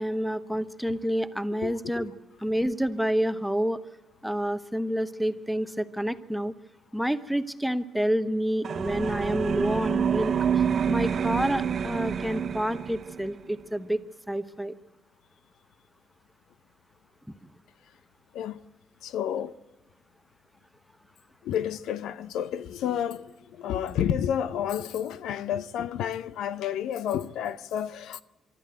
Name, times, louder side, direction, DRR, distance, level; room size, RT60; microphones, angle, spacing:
voice 1, 0.0-2.1 2.4-3.8 4.2-6.5 6.9-14.0 14.3-14.7, equal, ahead, 1.2 m, -28 dB
sound 1, 8.6-13.3, right 7 dB, 50° right, 1.1 m, -27 dB
voice 2, 19.0-19.6 21.4-28.2, left 9 dB, 85° left, 0.8 m, -30 dB
24.0 x 13.0 x 9.0 m
cardioid pair, 90°, 0 cm